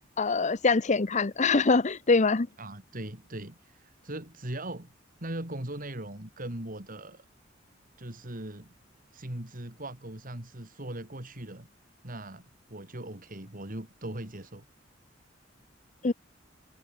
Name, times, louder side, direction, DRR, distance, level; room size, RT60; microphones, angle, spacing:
voice 1, 0.2-2.5 16.0-16.1, left 4 dB, 40° left, 0.8 m, -24 dB
voice 2, 2.6-4.9 5.2-7.3 8.0-8.7 9.1-11.7 12.0-14.6, right 1 dB, 45° right, 3.7 m, -39 dB
head